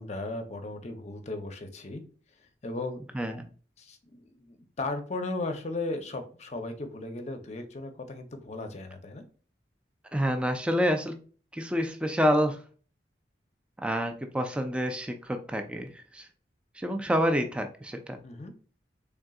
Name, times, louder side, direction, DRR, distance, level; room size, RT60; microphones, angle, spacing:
voice 1, 0.0-2.0 2.6-3.0 3.8-9.2 18.2-18.5, left 2 dB, 40° left, 6 dB, 0.6 m, -36 dB
voice 2, 3.1-3.5 10.1-11.1 11.5-12.6 13.8-16.3 16.8-18.2, equal, 5° right, 5 dB, 0.4 m, -28 dB
3.8 x 3.5 x 2.3 m, 0.40 s
head